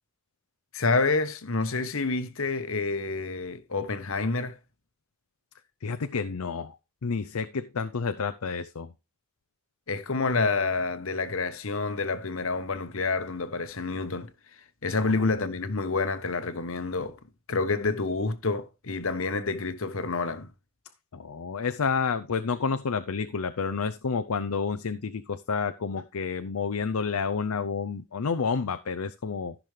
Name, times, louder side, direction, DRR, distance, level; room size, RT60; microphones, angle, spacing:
voice 1, 0.7-4.6 9.9-14.3 14.8-17.2 17.5-20.5, left 3 dB, 65° left, 1.1 m, -28 dB
voice 2, 5.8-6.8 7.0-8.9 15.0-15.1 21.1-29.6, left 5 dB, 85° left, 0.6 m, -30 dB
14.5 x 6.1 x 3.3 m
head